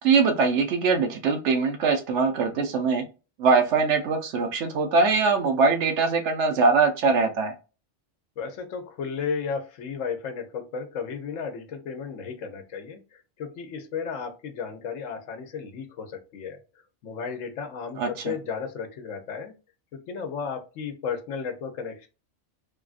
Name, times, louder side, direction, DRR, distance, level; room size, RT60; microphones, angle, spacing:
voice 1, 0.0-3.0 3.4-7.5 18.0-18.3, right 4 dB, 70° right, 0.9 m, -22 dB
voice 2, 8.4-16.6 17.0-19.5 19.9-22.1, left 6 dB, 80° left, 1.1 m, -34 dB
3.3 x 2.4 x 2.4 m
omnidirectional pair, 1.3 m